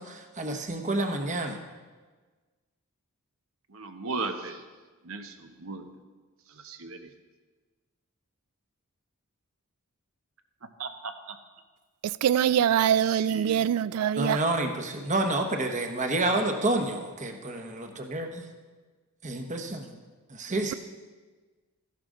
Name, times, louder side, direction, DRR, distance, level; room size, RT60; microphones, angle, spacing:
voice 1, 0.0-1.6 14.2-18.4 19.2-19.9 20.3-20.7, right 2 dB, 35° right, 1.1 m, -29 dB
voice 2, 3.7-4.6 5.0-5.9 6.5-7.1 10.8-11.4 12.3-12.4 13.0-14.0, right 4 dB, 70° right, 1.0 m, -37 dB
voice 3, 12.0-14.4, right 9 dB, 90° right, 0.3 m, -24 dB
14.0 x 11.5 x 3.8 m
head